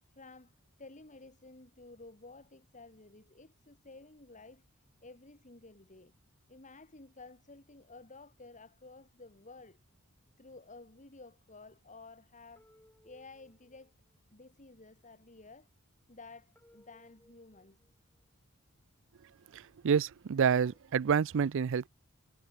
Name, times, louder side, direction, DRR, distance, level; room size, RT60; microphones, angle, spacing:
voice 1, 0.1-0.5 0.8-4.6 5.0-6.1 6.5-9.8 10.4-12.7 13.0-13.9 14.3-15.7 16.1-17.9, left 3 dB, 35° left, 2.9 m, -53 dB
sound 1, 12.6-14.2 16.6-18.2 20.6-20.8, left 1 dB, 10° left, 2.6 m, -65 dB
voice 2, 19.5-21.9, right 7 dB, 65° right, 0.4 m, -28 dB
head